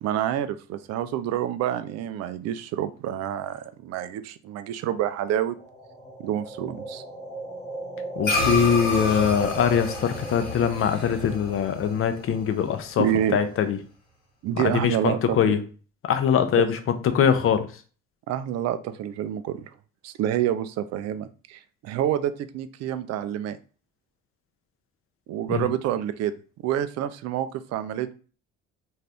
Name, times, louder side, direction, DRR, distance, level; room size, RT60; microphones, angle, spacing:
voice 1, 0.0-5.6 6.2-7.0 13.0-13.4 14.4-15.6 16.5-16.7 18.3-19.7 20.0-23.6 25.3-26.3 26.6-28.1, right 11 dB, 50° right, 12 dB, 0.4 m, -28 dB
sound 1, 5.4-13.4, right 2 dB, 10° left, 0.8 m, -38 dB
sound 2, 8.2-12.9, left 3 dB, 80° left, 1.2 m, -30 dB
voice 2, 8.2-13.1 13.3-13.8 14.5-15.6 16.1-17.7 25.5-25.7, left 7 dB, 40° left, 9 dB, 0.6 m, -22 dB
2.5 x 2.3 x 3.4 m, 0.38 s
hypercardioid pair, 50°, 34 cm